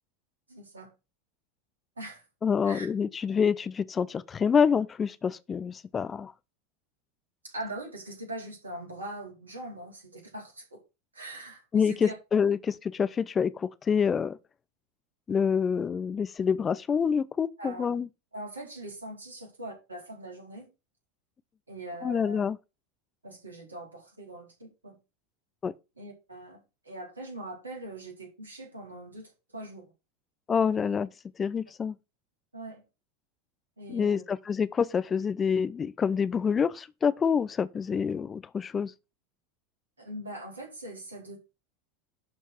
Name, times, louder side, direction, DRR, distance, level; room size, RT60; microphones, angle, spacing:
voice 1, 0.5-0.9 2.0-2.2 2.6-2.9 7.4-10.8 11.1-12.1 17.6-17.9 18.3-20.7 21.7-22.4 23.2-25.0 26.0-29.9 32.5-32.8 33.8-34.2 40.0-41.4, right 1 dB, 80° right, 4.0 m, -42 dB
voice 2, 2.4-6.3 11.7-14.4 15.3-18.1 22.0-22.6 25.6-25.7 30.5-31.1 31.4-31.9 33.9-38.9, left 6 dB, 25° left, 0.6 m, -27 dB
11.5 x 4.6 x 6.2 m
figure-of-eight pair, 80°, 0 cm